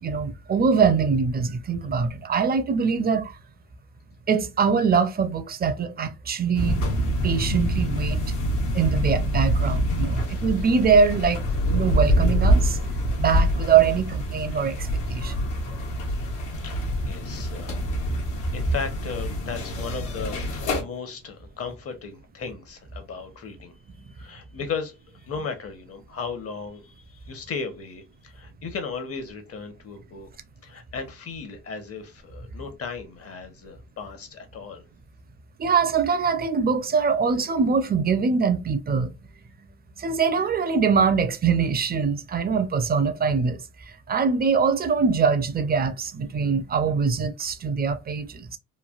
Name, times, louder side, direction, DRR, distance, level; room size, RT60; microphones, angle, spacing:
voice 1, 0.0-3.3 4.3-6.8 7.2-8.3 8.6-11.4 11.7-12.8 13.1-15.3 35.6-39.1 40.0-43.6 44.1-48.6, right 5 dB, 30° right, 0.5 m, -23 dB
sound 1, 6.5-20.8, equal, 80° left, 1.0 m, -25 dB
voice 2, 16.6-17.8 18.5-23.7 24.1-24.9 25.2-30.3 30.6-34.9, left 5 dB, 50° left, 0.9 m, -36 dB
3.2 x 2.3 x 2.3 m
cardioid pair, 90°, 30 cm